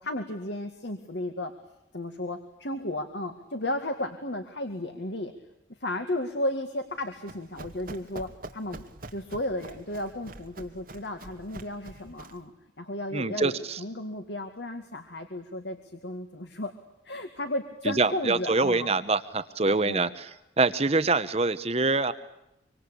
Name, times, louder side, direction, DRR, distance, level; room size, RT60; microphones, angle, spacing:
voice 1, 0.0-1.5 1.9-5.3 5.8-8.8 9.1-12.5 12.8-16.7 17.0-18.9 19.6-20.1, left 1 dB, 60° left, 6 dB, 2.1 m, -34 dB
Run, 6.9-12.5, right 2 dB, 45° right, 2.2 m, -45 dB
voice 2, 13.1-13.8 17.9-20.3 20.6-22.1, right 3 dB, 30° right, 12 dB, 1.0 m, -25 dB
25.5 x 25.5 x 8.4 m, 0.87 s
head